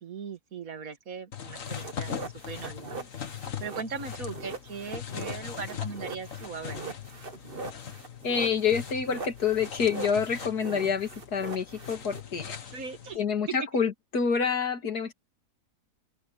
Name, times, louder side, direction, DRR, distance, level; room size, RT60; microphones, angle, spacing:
voice 1, 0.0-2.1 2.5-3.1 3.6-6.8 12.6-13.2, right 5 dB, 65° right, 2.0 m, -39 dB
sound 1, 1.3-13.2, left 9 dB, 55° left, 1.7 m, -40 dB
sound 2, 1.7-12.2, right 4 dB, 35° right, 1.7 m, -41 dB
voice 2, 8.2-12.6 13.1-15.1, left 6 dB, 85° left, 2.7 m, -27 dB
open air
omnidirectional pair, 1.6 m